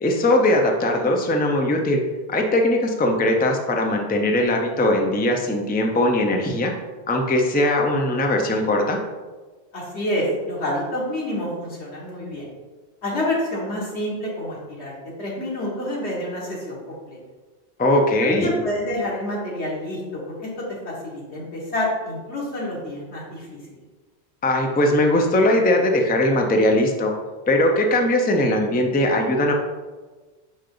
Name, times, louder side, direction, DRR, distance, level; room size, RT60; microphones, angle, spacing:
voice 1, 0.0-2.0 2.3-6.7 7.1-9.0 17.8-18.6 24.4-27.1 27.5-29.5, left 1 dB, 10° left, 2 dB, 0.5 m, -20 dB
voice 2, 9.7-12.5 13.0-14.9 15.2-17.2 18.2-20.4 20.9-23.6, left 1 dB, 85° left, -4 dB, 2.0 m, -28 dB
5.6 x 5.3 x 3.8 m, 1.3 s
omnidirectional pair, 1.1 m